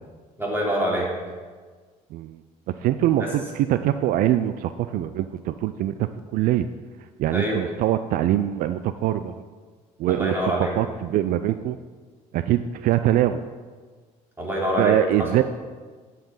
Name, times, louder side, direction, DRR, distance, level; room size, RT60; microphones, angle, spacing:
voice 1, 0.4-1.1 7.3-7.6 10.1-10.7 14.4-15.3, equal, 15° right, -3 dB, 3.3 m, -25 dB
voice 2, 2.7-6.7 7.2-9.4 10.0-11.8 12.3-13.4 14.8-15.4, right 12 dB, 70° right, 11 dB, 0.4 m, -23 dB
10.0 x 5.8 x 5.5 m, 1.5 s
supercardioid pair, 90°, 15 cm